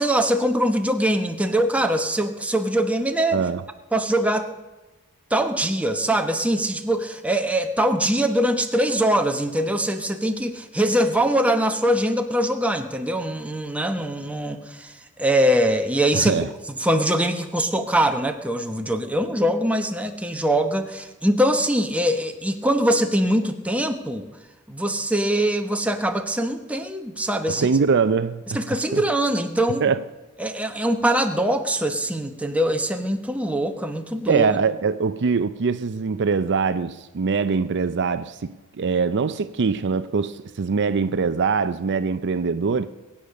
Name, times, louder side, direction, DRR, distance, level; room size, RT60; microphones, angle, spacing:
voice 1, 0.0-3.4 3.9-4.5 5.3-14.9 15.2-16.3 16.8-24.3 24.7-27.7 28.5-29.8 30.4-34.4, right 1 dB, 5° right, 1.0 m, -22 dB
voice 2, 3.3-3.6 16.1-16.5 27.5-28.6 28.9-29.0 29.8-30.0 34.3-42.9, right 5 dB, 55° right, 0.5 m, -23 dB
21.5 x 8.6 x 6.5 m
head